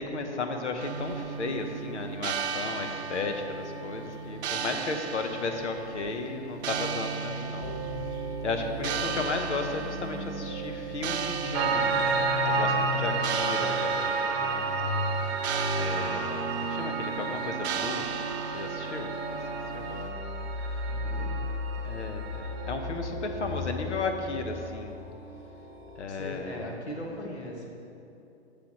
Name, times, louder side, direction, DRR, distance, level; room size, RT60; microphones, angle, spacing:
voice 1, 0.0-7.8 8.4-14.8 15.8-18.1 18.5-19.1 19.7-20.1 21.8-24.9 26.0-26.8, left 3 dB, 90° left, 5 dB, 1.0 m, -34 dB
sound 1, 0.8-20.1, right 6 dB, 70° right, 0.7 m, -36 dB
sound 2, 7.6-26.0, left 2 dB, 25° left, 0.8 m, -37 dB
voice 2, 8.8-9.2 20.9-21.5 26.1-27.7, left 1 dB, 70° left, -1 dB, 1.7 m, -39 dB
Piano, 11.5-22.8, right 4 dB, 25° right, 0.5 m, -31 dB
11.5 x 6.9 x 3.0 m, 2.8 s
hypercardioid pair, 130°, 34 cm